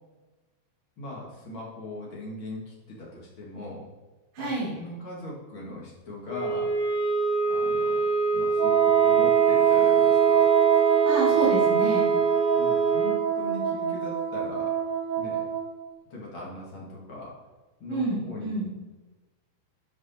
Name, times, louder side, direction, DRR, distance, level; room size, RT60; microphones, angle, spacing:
voice 1, 1.0-3.8 4.4-4.5 4.8-6.7 7.5-10.5 12.5-14.7 15.2-15.4 16.1-17.3 17.8-18.5, left 1 dB, 45° left, -5 dB, 1.6 m, -40 dB
voice 2, 4.3-4.7 11.0-12.1 17.9-18.7, right 2 dB, 70° right, -9 dB, 4.9 m, -28 dB
sound 1, 6.3-13.3, right 4 dB, 75° left, 4.8 m, -25 dB
Wind instrument woodwind instrument, 8.6-15.9, right 10 dB, 85° right, 1.9 m, -24 dB
11.0 x 5.3 x 4.3 m, 1.2 s
omnidirectional pair, 5.4 m